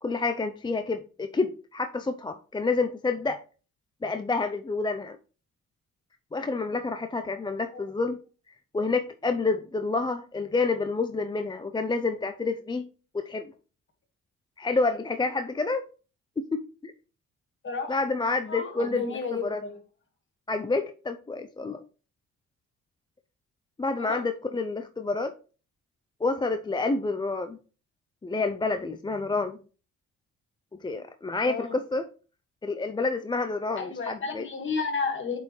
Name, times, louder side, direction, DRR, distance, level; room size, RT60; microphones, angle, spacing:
voice 1, 0.0-3.4 4.0-5.2 6.3-8.2 8.7-12.9 13.1-13.5 14.6-15.8 16.5-16.9 17.9-19.6 20.5-21.8 23.8-25.3 26.2-27.6 28.2-29.6 30.8-32.1 32.6-34.5, left 3 dB, 15° left, 0.4 m, -28 dB
voice 2, 18.5-19.8 23.9-24.2 31.4-31.7 33.8-35.4, left 4 dB, 40° left, 1.8 m, -32 dB
8.2 x 4.2 x 3.1 m
cardioid pair, 90°, 30 cm